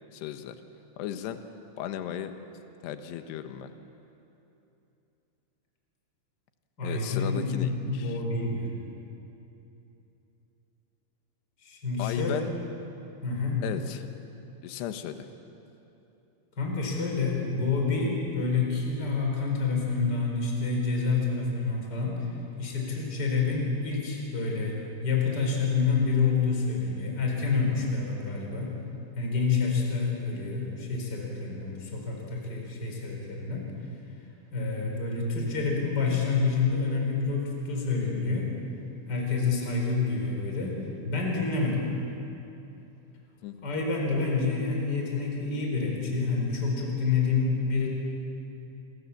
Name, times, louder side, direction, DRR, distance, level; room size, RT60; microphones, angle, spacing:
voice 1, 0.1-0.6 1.0-1.4 1.8-2.3 2.8-3.7 6.8-8.2 12.0-12.5 13.6-14.1 14.6-15.3 43.4-43.6, left 10 dB, 70° left, 8 dB, 3.2 m, -35 dB
voice 2, 6.8-8.7 11.6-12.4 13.2-13.6 16.6-22.2 22.6-24.7 25.0-28.7 29.2-33.7 34.5-38.5 39.1-40.8 41.0-41.8 43.6-47.9, left 4 dB, 20° left, 0 dB, 5.0 m, -28 dB
30.0 x 25.5 x 7.3 m, 2.9 s
omnidirectional pair, 5.3 m